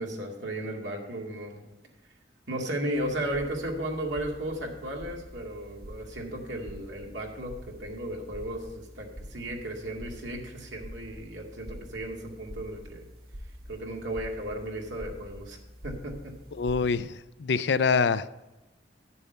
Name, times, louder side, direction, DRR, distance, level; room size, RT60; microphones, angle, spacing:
voice 1, 0.0-1.6 2.5-13.0 13.7-15.6 15.8-16.3, right 1 dB, 90° right, 0 dB, 2.2 m, -35 dB
sound 1, 2.9-17.0, equal, 55° right, 1.2 m, -46 dB
voice 2, 16.6-18.3, left 5 dB, 70° left, 15 dB, 0.4 m, -25 dB
10.5 x 7.0 x 5.6 m, 1.1 s
head